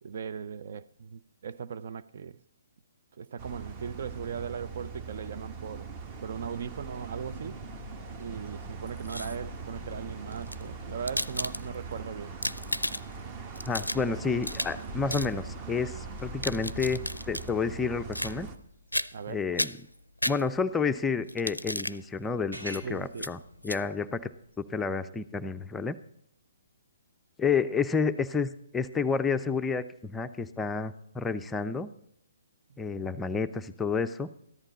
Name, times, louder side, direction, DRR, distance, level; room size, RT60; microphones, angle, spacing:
voice 1, 0.0-2.4 3.2-5.9 6.2-7.6 8.1-12.3 19.1-19.5 22.8-23.3 32.7-32.8, right 7 dB, 45° right, 0.5 m, -38 dB
sound 1, 3.4-18.6, right 4 dB, 25° right, 1.1 m, -41 dB
sound 2, 6.9-20.0 20.4-24.9, equal, 80° right, 4.7 m, -50 dB
sound 3, 8.9-9.6 10.3-11.9 12.3-13.2 13.6-14.8 15.1-15.3 16.2-17.5 18.1-18.6 18.9-19.3 19.6-20.8 21.3-22.0 22.7-22.8 23.2-23.3 23.6-23.8, left 1 dB, 85° left, 0.4 m, -34 dB
voice 2, 13.7-18.5 19.3-19.7 20.3-23.4 23.6-24.3 24.6-26.0 27.4-31.9 32.8-34.3, left 5 dB, 10° left, 0.5 m, -30 dB
14.0 x 11.0 x 4.2 m
figure-of-eight pair, 130°, 0 cm